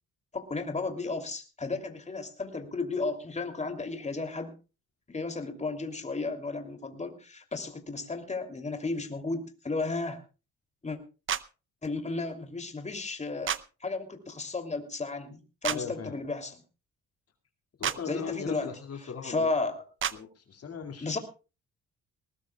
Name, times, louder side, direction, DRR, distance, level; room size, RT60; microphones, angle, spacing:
voice 1, 0.3-4.5 5.1-10.2 10.8-11.0 11.8-13.5 13.8-16.6 18.0-18.7 19.2-19.8 21.0-21.2, left 3 dB, 25° left, 7 dB, 2.9 m, -33 dB
sound 1, 11.3-11.4 13.5-13.6 15.6-15.8 17.8-18.0 20.0-20.2, right 9 dB, 40° right, 0.7 m, -29 dB
voice 2, 15.7-16.1 17.8-19.5 20.1-21.2, left 6 dB, 50° left, 5 dB, 2.4 m, -39 dB
20.0 x 19.0 x 2.3 m, 0.32 s
cardioid pair, 90°, 30 cm